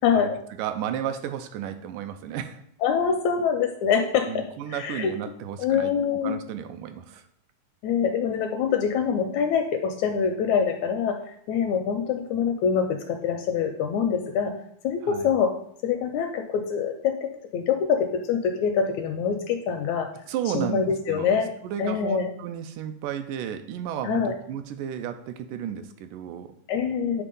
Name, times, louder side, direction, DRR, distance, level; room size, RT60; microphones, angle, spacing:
voice 1, 0.0-0.4 2.8-5.1 5.6-6.4 7.8-11.2 11.5-14.5 14.8-15.5 15.8-20.1 20.5-21.5 21.8-22.3 24.0-24.3 26.7-27.2, left 7 dB, 80° left, 5 dB, 1.7 m, -25 dB
voice 2, 0.6-2.6 4.3-5.9 6.2-7.2 15.0-15.3 20.3-21.4 21.6-26.6, right 9 dB, 85° right, 8 dB, 2.1 m, -33 dB
8.3 x 3.4 x 5.3 m, 0.68 s
omnidirectional pair, 3.8 m